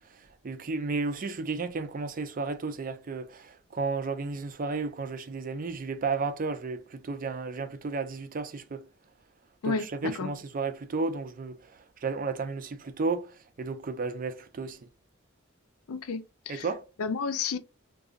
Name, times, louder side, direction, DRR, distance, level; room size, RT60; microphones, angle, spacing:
voice 1, 0.4-8.9 9.6-11.6 12.0-14.8 16.5-16.8, right 4 dB, 40° right, 0.4 m, -33 dB
voice 2, 9.6-10.3 15.9-16.6 17.0-17.6, left 5 dB, 90° left, 0.5 m, -31 dB
3.7 x 2.6 x 2.4 m
head